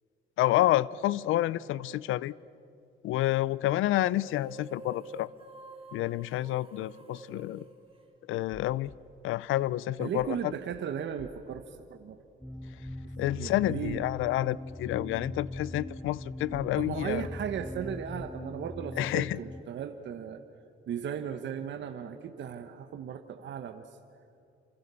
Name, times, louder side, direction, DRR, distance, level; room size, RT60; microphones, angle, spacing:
voice 1, 0.4-2.3 3.0-5.3 5.9-7.6 8.3-8.9 9.2-10.5 13.2-17.3 19.0-19.4, left 15 dB, 85° left, 0.6 m, -29 dB
sound 1, 4.0-8.7, right 3 dB, 30° right, 3.8 m, -50 dB
sound 2, 8.8-8.9 10.2-10.4 10.7-10.8 11.2-11.6 12.8-13.0 13.3-13.4 13.8-14.3 15.5-15.7 16.0-16.1 16.5-16.9 18.2-18.4 18.7-18.8, left 1 dB, 25° left, 2.9 m, -51 dB
voice 2, 10.0-11.6 11.9-12.2 13.4-14.0 16.7-20.4 20.9-23.9, right 8 dB, 65° right, 1.3 m, -36 dB
sound 3, 12.4-19.6, left 1 dB, ahead, 0.6 m, -41 dB
28.5 x 26.0 x 7.0 m
cardioid pair, 90°, 20 cm